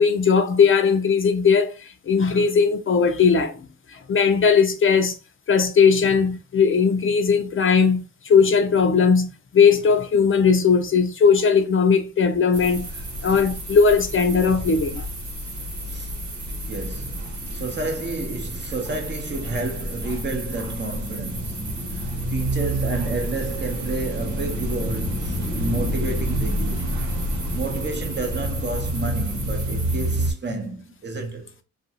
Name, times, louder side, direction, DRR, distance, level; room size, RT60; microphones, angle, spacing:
voice 1, 0.0-3.6 3.9-5.2 5.5-12.9 13.2-15.1, left 5 dB, 45° left, 0.4 m, -18 dB
sound 1, 12.5-30.3, right 1 dB, 70° right, 1.1 m, -28 dB
voice 2, 16.7-26.9 27.5-31.5, right 3 dB, 35° right, 0.7 m, -31 dB
2.5 x 2.2 x 2.7 m
cardioid pair, 100°, 30 cm